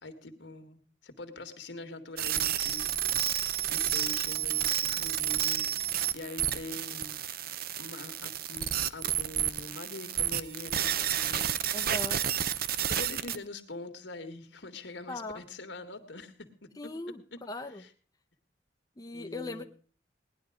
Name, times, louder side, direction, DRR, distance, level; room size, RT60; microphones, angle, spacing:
voice 1, 0.0-2.9 3.7-5.7 6.1-7.2 7.8-11.6 12.1-12.3 12.9-16.7 17.3-17.4 19.1-19.7, left 2 dB, 75° left, 8 dB, 1.9 m, -44 dB
sound 1, 2.2-13.4, right 10 dB, 55° right, 0.7 m, -31 dB
voice 2, 11.7-12.2 15.1-15.4 16.8-17.8 19.0-19.6, left 2 dB, 20° left, 5 dB, 0.8 m, -39 dB
18.5 x 11.0 x 5.1 m, 0.41 s
head